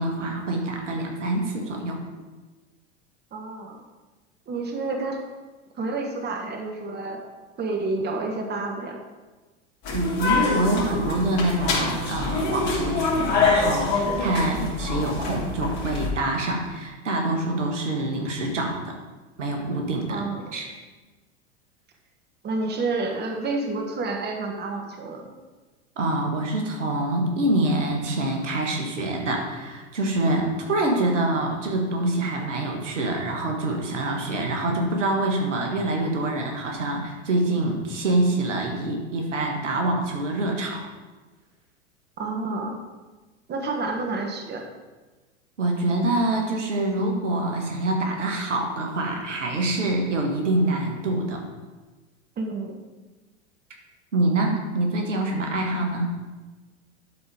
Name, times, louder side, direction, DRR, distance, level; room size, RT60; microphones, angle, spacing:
voice 1, 0.0-2.0 9.9-18.9 19.4-20.2 20.5-20.6 26.0-40.9 45.6-51.4 54.1-56.1, right 2 dB, 85° right, 1 dB, 1.6 m, -25 dB
voice 2, 3.3-3.8 4.5-5.2 5.7-7.2 7.6-9.0 20.1-20.6 22.4-25.3 42.2-42.8 43.5-44.6 52.4-52.8, right 3 dB, 30° right, 3 dB, 1.3 m, -29 dB
sound 1, 9.8-16.1, left 3 dB, 50° left, 3.0 m, -25 dB
11.5 x 4.3 x 4.9 m, 1.2 s
hypercardioid pair, 85°, 36 cm